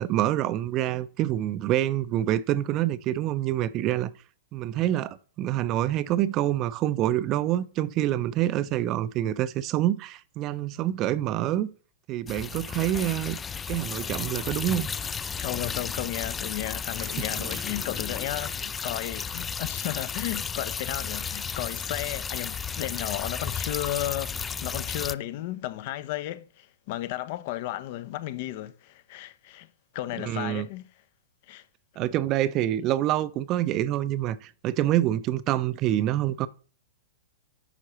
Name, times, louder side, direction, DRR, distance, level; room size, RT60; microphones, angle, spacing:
voice 1, 0.0-4.1 4.5-11.7 12.1-13.4 13.7-14.9 17.0-17.6 30.2-30.7 32.0-36.5, right 13 dB, 35° right, 0.5 m, -26 dB
sound 1, 12.3-25.1, left 6 dB, 15° left, 0.3 m, -33 dB
voice 2, 15.4-29.7 29.9-30.9 31.5-31.6 32.0-32.1, left 14 dB, 55° left, 0.6 m, -34 dB
10.0 x 5.7 x 3.1 m
hypercardioid pair, 120°, 0 cm